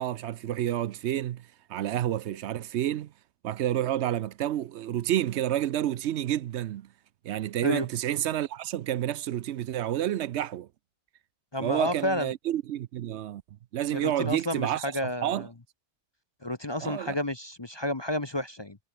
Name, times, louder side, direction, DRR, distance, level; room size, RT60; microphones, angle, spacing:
voice 1, 0.0-3.1 3.4-6.9 7.2-10.7 11.6-13.4 13.7-14.8 15.2-15.5 16.8-17.2, right 12 dB, 70° right, 0.9 m, -29 dB
voice 2, 11.5-12.3 13.9-15.5 16.4-18.8, left 1 dB, 25° left, 1.0 m, -31 dB
omnidirectional pair, 1.2 m